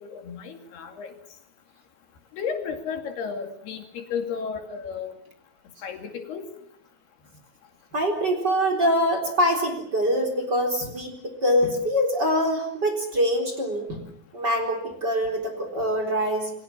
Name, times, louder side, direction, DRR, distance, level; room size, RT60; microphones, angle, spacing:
voice 1, 0.0-1.1 2.3-5.1 5.8-6.5, left 6 dB, 70° left, 5 dB, 4.3 m, -33 dB
voice 2, 7.9-14.0 14.3-16.5, equal, 25° right, 4 dB, 4.1 m, -24 dB
28.5 x 22.5 x 7.3 m, 0.71 s
omnidirectional pair, 4.9 m